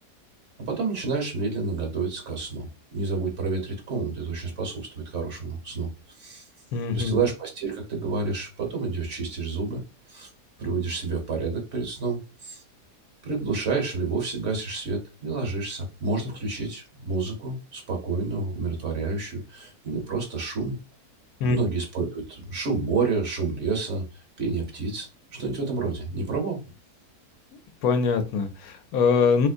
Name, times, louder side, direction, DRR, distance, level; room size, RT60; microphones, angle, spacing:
voice 1, 0.6-5.9 6.1-6.5 6.9-9.8 10.1-10.3 10.6-12.6 13.2-20.8 21.4-24.0 24.4-26.7, right 4 dB, 50° right, 1 dB, 1.2 m, -29 dB
voice 2, 6.7-7.2 21.4-21.6 27.8-29.5, left 5 dB, 75° left, 7 dB, 1.0 m, -23 dB
3.5 x 2.8 x 2.5 m, 0.30 s
omnidirectional pair, 1.7 m